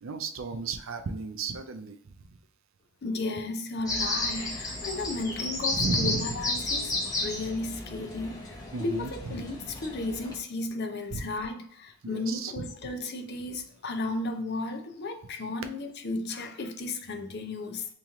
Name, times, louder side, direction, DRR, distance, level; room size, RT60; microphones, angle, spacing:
voice 1, 0.0-2.4 5.7-6.7 8.7-9.5 11.1-11.3 12.0-12.9, right 4 dB, 70° right, 0.5 m, -35 dB
voice 2, 3.0-17.9, left 2 dB, 50° left, 0.5 m, -34 dB
sound 1, 3.9-10.4, left 2 dB, 20° left, 0.7 m, -32 dB
3.0 x 3.0 x 3.6 m
head